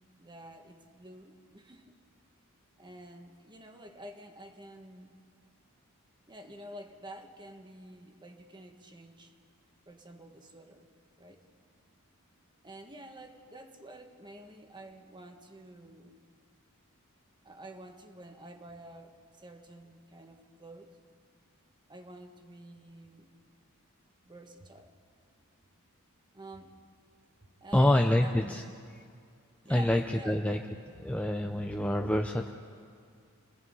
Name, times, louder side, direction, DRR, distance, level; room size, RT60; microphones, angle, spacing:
voice 1, 0.2-2.0 2.8-5.1 6.3-9.3 9.9-10.9 11.2-11.4 12.6-16.2 17.4-21.0 21.9-23.3 24.2-25.0 26.3-26.8 27.6-28.4 29.6-30.4, right 1 dB, 20° right, 5 dB, 1.5 m, -49 dB
voice 2, 27.7-28.6 29.7-30.6 30.9-32.5, left 1 dB, 5° left, 3 dB, 0.6 m, -26 dB
28.5 x 20.0 x 5.5 m, 2.2 s
head